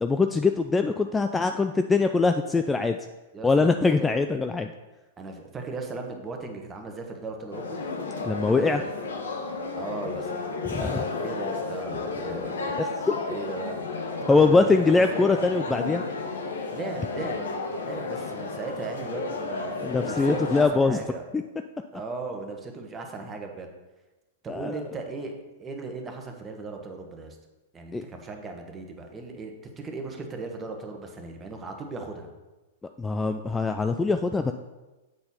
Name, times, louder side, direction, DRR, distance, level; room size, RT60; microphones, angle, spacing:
voice 1, 0.0-3.0 3.4-4.7 8.2-8.8 10.7-11.1 12.2-12.5 12.8-13.1 14.3-16.0 19.8-21.0 21.3-21.4 24.5-24.8 27.9-28.0 33.0-34.5, left 4 dB, 10° left, 7 dB, 0.3 m, -23 dB
voice 2, 3.3-3.7 4.0-4.1 5.2-7.8 8.6-9.1 9.7-10.3 11.2-12.6 13.3-13.8 14.2-15.3 16.7-17.4 17.8-21.2 21.9-23.7 24.4-25.3 25.6-27.4 27.7-32.3, right 3 dB, 20° right, 3 dB, 1.3 m, -37 dB
sound 1, 7.5-20.7, left 3 dB, 80° left, 1.1 m, -32 dB
7.9 x 4.2 x 5.5 m, 1.1 s
hypercardioid pair, 110°, 0 cm